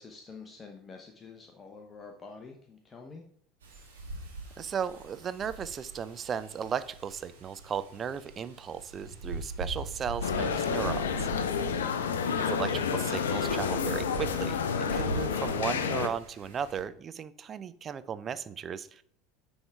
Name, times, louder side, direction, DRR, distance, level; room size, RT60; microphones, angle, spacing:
voice 1, 0.0-3.3, left 4 dB, 25° left, 2 dB, 0.8 m, -48 dB
Wind, 3.6-16.8, right 2 dB, 75° right, 1.7 m, -42 dB
voice 2, 4.6-11.3 12.4-19.0, right 7 dB, 30° right, 14 dB, 0.4 m, -36 dB
sound 1, 10.2-16.1, left 6 dB, 70° left, 0.4 m, -30 dB
9.5 x 3.6 x 3.5 m, 0.64 s
figure-of-eight pair, 70°, 0 cm